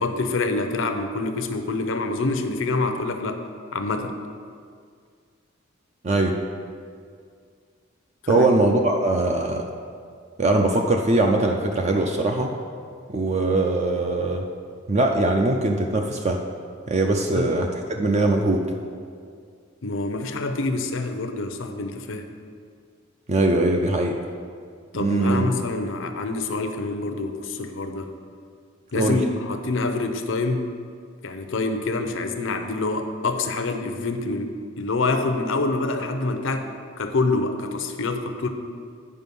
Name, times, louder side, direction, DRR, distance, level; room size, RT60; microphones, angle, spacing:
voice 1, 0.0-3.4 3.7-4.2 8.2-8.6 17.4-17.5 19.8-22.3 24.9-28.1 28.9-30.7 31.2-36.7 37.0-38.5, left 3 dB, 70° left, 7 dB, 0.7 m, -26 dB
voice 2, 6.0-6.4 8.3-9.7 10.4-12.5 13.1-14.5 14.9-16.4 16.9-18.6 23.3-24.2 25.0-25.5 28.9-29.2, right 2 dB, 35° right, 2 dB, 0.5 m, -21 dB
9.7 x 5.0 x 5.3 m, 2.2 s
head